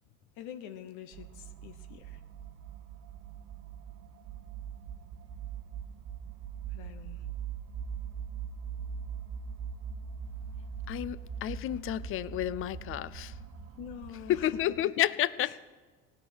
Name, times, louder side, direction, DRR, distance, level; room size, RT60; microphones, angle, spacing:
voice 1, 0.4-2.2 6.7-7.3 13.8-15.0 15.4-15.7, left 9 dB, 70° left, 8 dB, 1.0 m, -45 dB
sound 1, 1.1-14.9, right 7 dB, 55° right, 1.1 m, -42 dB
voice 2, 10.9-13.3 14.3-15.5, left 12 dB, 45° left, 18 dB, 0.5 m, -31 dB
17.0 x 6.5 x 9.0 m, 1.4 s
supercardioid pair, 100°, 31 cm